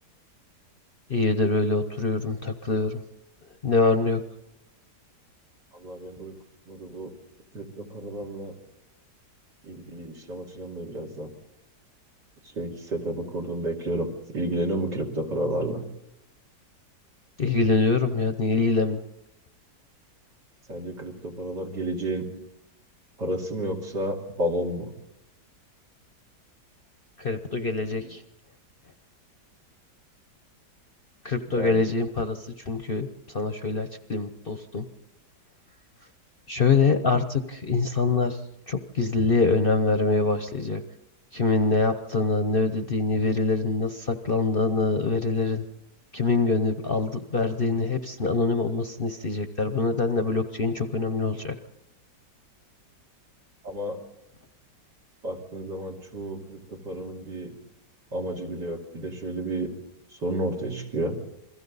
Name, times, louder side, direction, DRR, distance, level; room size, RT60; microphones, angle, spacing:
voice 1, 1.1-3.0 3.6-4.2 17.4-19.0 27.2-28.2 31.2-34.9 36.5-38.4 38.7-40.8 41.3-45.6 46.1-51.6, left 3 dB, 40° left, 8 dB, 0.9 m, -24 dB
voice 2, 5.7-6.4 6.7-7.1 7.5-8.5 9.6-11.3 12.6-15.8 20.7-22.3 23.2-24.9 31.5-31.8 53.6-54.0 55.2-57.5 58.1-59.7 60.2-61.2, right 1 dB, 75° right, 0 dB, 3.5 m, -31 dB
29.0 x 22.5 x 4.1 m, 0.86 s
omnidirectional pair, 1.8 m